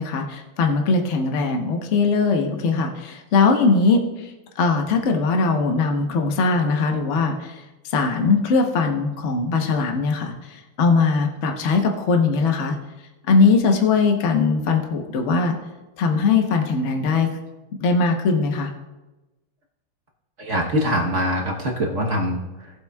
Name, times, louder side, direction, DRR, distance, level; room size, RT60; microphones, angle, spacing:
voice 1, 0.0-12.8 13.3-15.6 16.0-17.3 17.8-18.7, left 4 dB, 45° left, 3 dB, 1.0 m, -20 dB
voice 2, 20.4-22.8, equal, 45° right, -1 dB, 1.1 m, -24 dB
18.0 x 8.1 x 2.3 m, 1.1 s
omnidirectional pair, 2.4 m